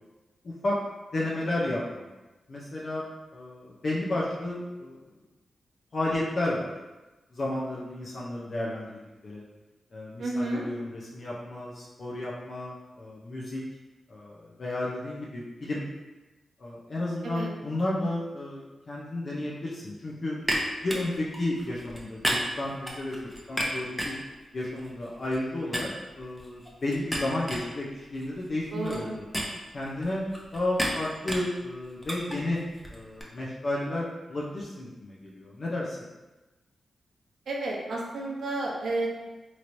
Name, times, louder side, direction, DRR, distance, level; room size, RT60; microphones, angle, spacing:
voice 1, 0.4-0.8 1.1-2.1 2.5-3.0 3.3-4.9 5.9-6.7 7.3-9.4 9.9-13.6 14.1-15.9 16.6-20.4 20.8-23.2 23.5-24.1 24.5-29.1 29.7-32.6 32.9-36.1, left 1 dB, 55° left, -5 dB, 0.6 m, -32 dB
voice 2, 10.2-10.7 17.2-17.5 28.7-29.1 37.5-39.1, right 2 dB, 75° right, -2 dB, 0.7 m, -31 dB
sound 1, 20.4-25.4 25.7-33.2, equal, 5° left, 0.8 m, -34 dB
3.0 x 2.9 x 2.6 m, 1.1 s
supercardioid pair, 45°, 0 cm